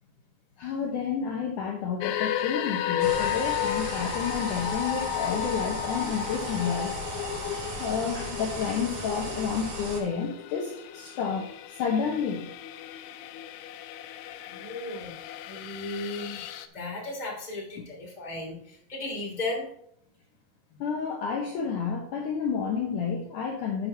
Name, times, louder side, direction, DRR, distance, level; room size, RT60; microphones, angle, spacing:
voice 1, 0.6-7.0 7.8-12.5 20.8-23.9, left 6 dB, 65° left, 0 dB, 2.2 m, -30 dB
sound 1, 2.0-16.7, left 11 dB, 85° left, 2.6 m, -34 dB
sound 2, 3.0-10.0, right 2 dB, 60° right, 4.0 m, -37 dB
voice 2, 14.5-15.1 15.4-16.5 16.7-19.7, left 2 dB, 10° left, -2 dB, 2.4 m, -35 dB
12.5 x 7.7 x 2.9 m, 0.70 s
omnidirectional pair, 4.6 m